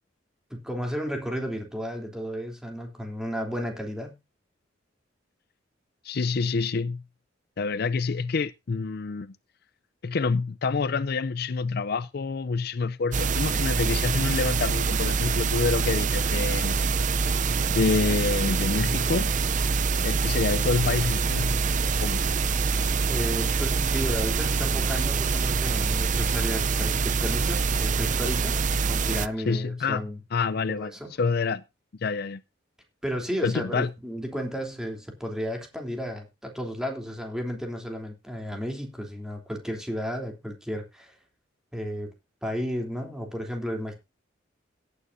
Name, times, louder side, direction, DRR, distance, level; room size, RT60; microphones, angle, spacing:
voice 1, 0.5-4.1 23.1-28.6 28.9-30.2 30.7-31.1 33.0-41.1 41.7-42.1 42.4-43.9, equal, 5° right, 3.2 m, -33 dB
voice 2, 6.0-7.0 7.6-9.4 10.0-16.8 17.7-19.3 20.0-21.6 22.0-22.2 29.5-30.0 30.3-30.9 31.2-31.6 32.0-32.4 33.4-33.9, left 4 dB, 55° left, 0.5 m, -27 dB
sound 1, 13.1-29.3, right 4 dB, 40° right, 0.5 m, -25 dB
17.5 x 9.5 x 2.7 m
head